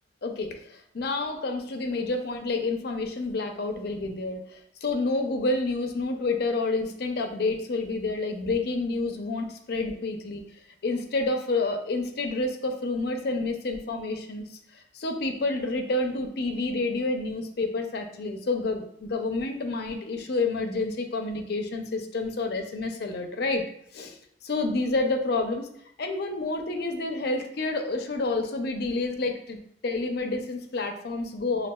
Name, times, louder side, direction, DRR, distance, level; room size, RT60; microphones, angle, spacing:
voice 1, 0.2-10.4 10.8-14.4 14.7-23.6 23.9-24.2 24.4-25.7 26.0-29.6 29.8-31.7, left 3 dB, 65° left, 4 dB, 0.5 m, -29 dB
6.2 x 2.3 x 2.2 m, 0.69 s
head